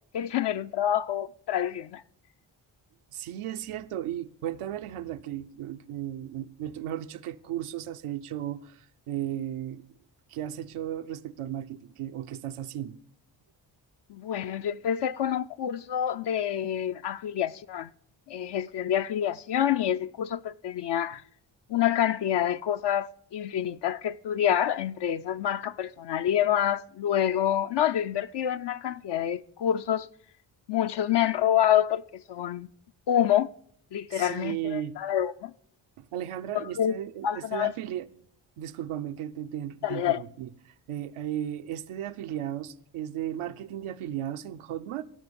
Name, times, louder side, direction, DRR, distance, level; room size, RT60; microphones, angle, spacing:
voice 1, 0.1-2.0 14.1-17.9 18.3-21.2 21.7-30.1 30.7-32.7 33.1-33.5 33.9-35.5 36.5-37.0 37.2-37.7 39.8-40.2, left 10 dB, 55° left, 0.5 m, -27 dB
voice 2, 3.1-9.8 10.3-13.0 34.1-35.0 36.0-38.1 38.6-45.0, right 11 dB, 80° right, 0.8 m, -35 dB
16.0 x 6.2 x 6.8 m
supercardioid pair, 50°, 50 cm